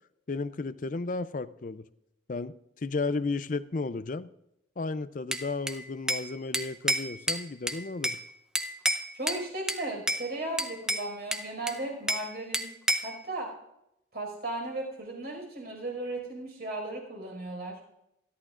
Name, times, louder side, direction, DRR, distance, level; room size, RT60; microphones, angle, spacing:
voice 1, 0.3-1.8 2.3-2.5 2.8-4.3 4.8-8.2, left 3 dB, 45° left, 13 dB, 0.5 m, -33 dB
Bell / Glass, 5.3-6.3 6.5-8.2 8.5-9.4 9.7-10.2 10.6-12.3 12.5-13.2, right 1 dB, 5° right, 0.7 m, -30 dB
voice 2, 9.1-12.7 13.0-13.5 14.1-17.8, right 2 dB, 55° right, 1 dB, 5.3 m, -36 dB
27.5 x 11.5 x 2.5 m, 0.84 s
head